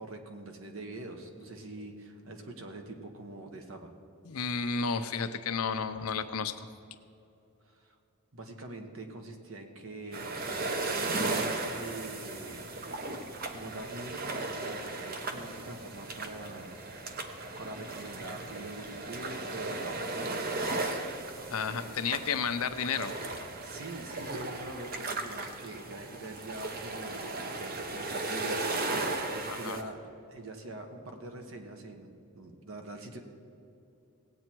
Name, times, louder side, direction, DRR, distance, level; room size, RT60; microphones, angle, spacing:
voice 1, 0.0-3.9 7.7-7.9 8.3-10.6 11.0-12.7 13.1-16.7 16.9-17.0 17.6-20.5 23.6-30.0 30.3-33.2, right 2 dB, 65° right, 4 dB, 1.3 m, -44 dB
voice 2, 4.2-6.7 20.8-21.0 21.5-23.1 29.5-29.8, left 5 dB, 80° left, 9 dB, 0.7 m, -32 dB
sound 1, 10.1-29.8, right 2 dB, 45° right, 0.9 m, -36 dB
17.5 x 8.5 x 4.6 m, 2.8 s
head